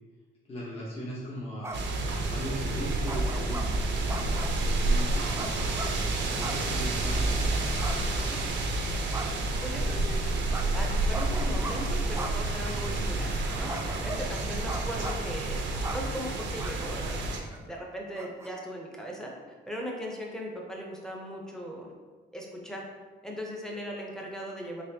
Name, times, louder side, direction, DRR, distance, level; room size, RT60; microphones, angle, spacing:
voice 1, 0.5-1.8 2.2-4.4 4.6-8.5, equal, 30° left, -6 dB, 0.9 m, -39 dB
sound 1, 1.6-2.0 3.1-3.6 4.1-4.6 5.3-5.9 6.4-6.7 6.9-7.0 7.8-8.5 9.1-9.5 10.5-10.6 11.1-11.7 12.1-12.3 12.9-13.0 13.7-14.3 14.7-15.3 15.8-16.0 16.6-16.7 17.0-17.2 17.5-17.6 18.1-18.5, right 2 dB, 15° right, 0.3 m, -38 dB
sound 2, 1.7-17.4, right 2 dB, 65° right, 0.6 m, -29 dB
voice 2, 9.6-10.2 10.7-13.7 14.0-15.6 15.9-17.2 17.6-21.9 22.3-22.8 23.2-24.8, equal, 5° left, -1 dB, 0.7 m, -38 dB
4.1 x 3.1 x 2.8 m, 1.5 s
cardioid pair, 90°, 20 cm